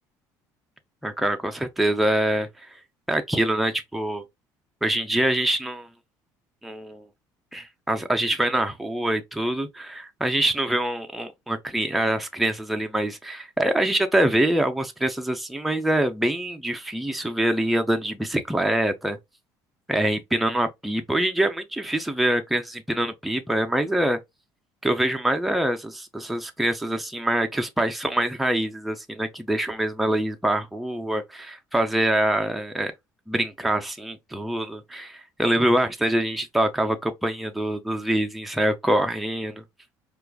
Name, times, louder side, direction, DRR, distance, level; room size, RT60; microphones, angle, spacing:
voice 1, 1.0-2.7 3.1-4.2 4.8-5.9 6.6-7.0 7.5-19.2 19.9-24.2 24.8-32.9 33.3-39.6, right 1 dB, ahead, 0.3 m, -25 dB
4.6 x 2.2 x 2.2 m
cardioid pair, 155°, 8 cm